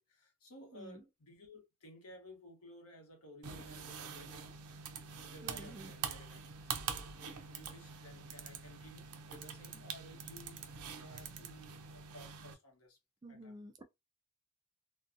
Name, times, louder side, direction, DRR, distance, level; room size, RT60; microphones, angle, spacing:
voice 1, 0.0-4.8 5.1-13.0 13.3-13.5, left 1 dB, 75° left, 1.0 m, -57 dB
voice 2, 0.7-1.0 5.4-5.9 13.2-13.8, right 1 dB, 20° right, 0.3 m, -50 dB
sound 1, 3.4-12.5, right 6 dB, 85° right, 0.5 m, -45 dB
2.6 x 2.2 x 2.5 m
head